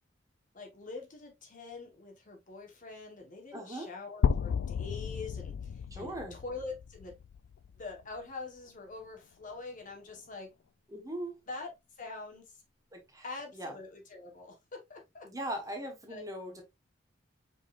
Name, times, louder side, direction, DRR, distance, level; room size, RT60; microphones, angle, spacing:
voice 1, 0.5-5.5 5.9-7.1 7.7-10.5 11.5-11.7 12.0-12.5 13.2-15.3 16.1-16.2, left 3 dB, 45° left, 1.3 m, -44 dB
voice 2, 3.5-3.9 5.9-6.4 10.9-11.3 12.9-13.2 13.5-13.7 15.2-16.6, right 1 dB, 20° right, 1.2 m, -39 dB
sound 1, 4.2-8.2, left 7 dB, 80° left, 0.3 m, -33 dB
5.2 x 3.6 x 2.5 m
head